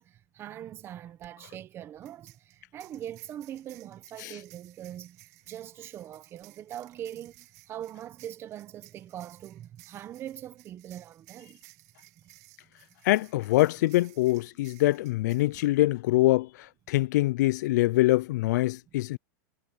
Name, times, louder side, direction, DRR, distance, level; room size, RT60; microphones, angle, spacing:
voice 1, 0.0-11.6, right 11 dB, 25° right, 0.8 m, -42 dB
sound 1, 1.2-1.3 2.0-15.7, right 21 dB, 55° right, 2.5 m, -57 dB
voice 2, 13.1-16.5 16.9-19.2, left 17 dB, 65° left, 0.4 m, -24 dB
supercardioid pair, 155°, 10 cm